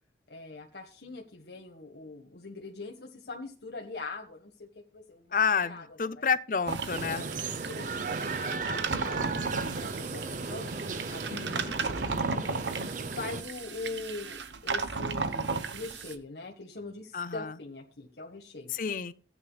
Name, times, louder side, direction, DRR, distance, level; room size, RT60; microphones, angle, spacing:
voice 1, 0.3-6.3 7.0-8.4 8.6-12.5 13.0-18.7, left 3 dB, 75° left, 1.5 m, -43 dB
voice 2, 5.3-7.2 11.3-11.7 17.1-17.5 18.7-19.1, left 6 dB, 50° left, 0.6 m, -30 dB
sound 1, 6.7-16.2, right 4 dB, 90° right, 1.0 m, -35 dB
sound 2, 6.9-13.4, right 3 dB, 45° right, 0.7 m, -36 dB
16.0 x 9.3 x 2.3 m
head